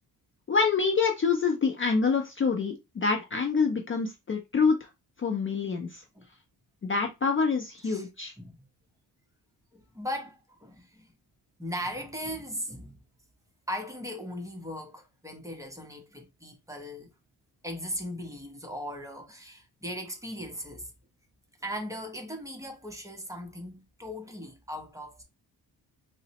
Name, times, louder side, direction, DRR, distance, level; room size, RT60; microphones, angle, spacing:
voice 1, 0.5-4.9 5.2-6.0 6.8-8.3, left 5 dB, 30° left, 0.4 m, -26 dB
voice 2, 9.7-11.1 11.6-13.0 13.7-17.1 17.6-20.9 21.6-25.2, equal, 10° right, 0.7 m, -38 dB
3.9 x 2.0 x 2.7 m
cardioid pair, 115°, 40 cm